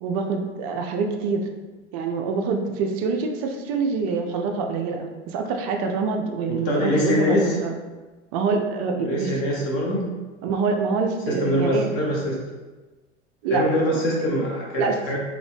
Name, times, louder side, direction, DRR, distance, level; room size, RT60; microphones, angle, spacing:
voice 1, 0.0-1.4 1.9-7.8 8.3-9.6 10.4-11.9 13.4-13.6 14.7-15.0, right 4 dB, 35° right, 3 dB, 0.4 m, -26 dB
voice 2, 6.5-7.6 9.0-10.1 11.3-12.4 13.5-15.2, equal, 40° left, -2 dB, 0.9 m, -23 dB
3.0 x 2.6 x 3.2 m, 1.2 s
figure-of-eight pair, 85°, 37 cm